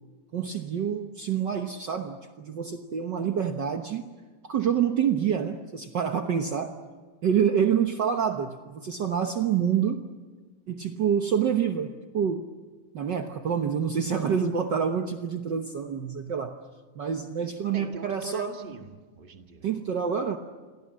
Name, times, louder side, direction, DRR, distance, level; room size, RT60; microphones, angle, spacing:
voice 1, 0.3-4.1 4.4-6.7 7.2-10.0 10.7-12.5 12.9-16.6 17.0-18.5 19.6-20.4, right 7 dB, 65° right, 5 dB, 1.0 m, -27 dB
voice 2, 17.7-19.7, right 3 dB, 25° right, 4 dB, 1.4 m, -42 dB
29.5 x 23.0 x 7.5 m, 1.4 s
omnidirectional pair, 3.7 m